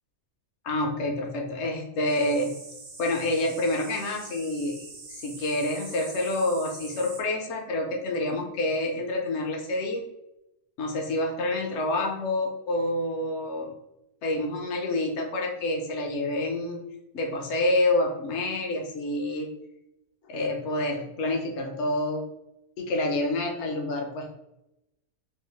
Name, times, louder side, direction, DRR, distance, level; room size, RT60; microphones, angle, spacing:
voice 1, 0.6-2.5 3.0-10.0 10.8-13.7 14.2-16.8 17.1-19.5 20.3-22.2 22.8-24.3, left 1 dB, 60° left, 2 dB, 0.8 m, -28 dB
sound 1, 2.1-7.2, right 3 dB, 50° right, 0.6 m, -44 dB
3.5 x 2.3 x 3.1 m, 0.88 s
omnidirectional pair, 1.5 m